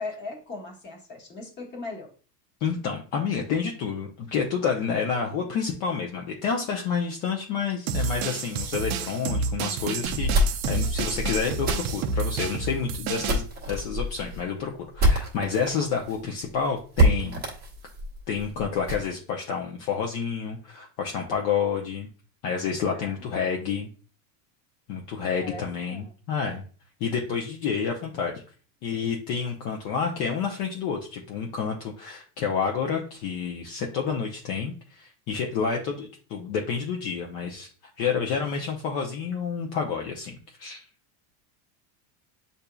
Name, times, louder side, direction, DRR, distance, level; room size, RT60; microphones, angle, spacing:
voice 1, 0.0-2.1 22.9-23.2 25.4-26.1, left 3 dB, 20° left, 0 dB, 1.2 m, -38 dB
voice 2, 2.6-17.4 18.3-22.1 22.4-23.9 24.9-26.6 27.0-28.3 28.8-37.7 38.0-40.8, left 6 dB, 45° left, 1 dB, 0.7 m, -29 dB
sound 1, 7.9-13.4, right 5 dB, 40° right, 0.4 m, -29 dB
sound 2, 10.0-15.7 16.1-16.2 16.4-16.5 16.9-19.1, equal, 20° right, 0.9 m, -26 dB
8.1 x 2.7 x 2.3 m, 0.40 s
supercardioid pair, 155°, 48 cm